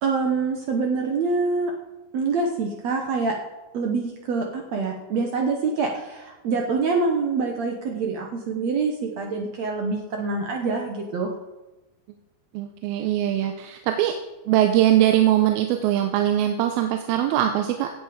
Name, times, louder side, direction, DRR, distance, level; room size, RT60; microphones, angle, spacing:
voice 1, 0.0-1.7 2.1-3.3 3.7-11.3, right 4 dB, 65° right, 1 dB, 1.7 m, -25 dB
voice 2, 12.5-14.1 14.5-17.9, right 12 dB, 85° right, 6 dB, 2.6 m, -21 dB
16.5 x 7.9 x 5.0 m, 1.1 s
omnidirectional pair, 4.3 m